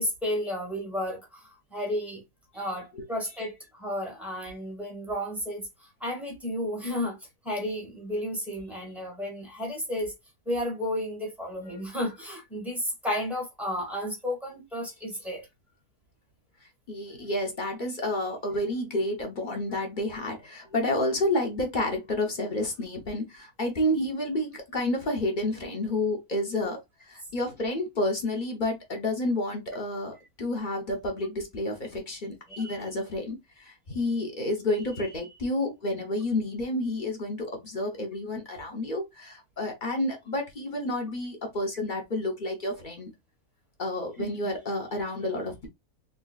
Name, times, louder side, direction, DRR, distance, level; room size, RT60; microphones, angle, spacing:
voice 1, 0.0-2.2 2.5-7.2 7.4-10.1 10.4-15.5 26.6-26.7 44.2-44.3, left 1 dB, ahead, 1.1 m, -32 dB
voice 2, 16.9-26.8 27.1-43.1 43.8-45.7, left 1 dB, 40° left, 0.8 m, -30 dB
3.8 x 2.9 x 2.4 m
omnidirectional pair, 1.8 m